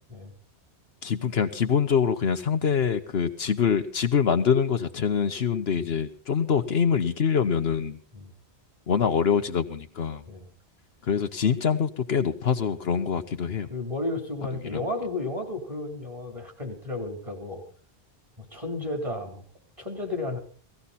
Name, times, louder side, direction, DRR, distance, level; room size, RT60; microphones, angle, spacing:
voice 1, 1.0-8.0 8.9-10.2 11.0-13.7 14.7-14.8, left 7 dB, 65° left, 9 dB, 1.1 m, -24 dB
voice 2, 13.7-17.6 18.5-19.4 19.8-20.4, left 2 dB, 30° right, 4 dB, 3.7 m, -33 dB
17.5 x 16.0 x 4.2 m, 0.42 s
omnidirectional pair, 1.1 m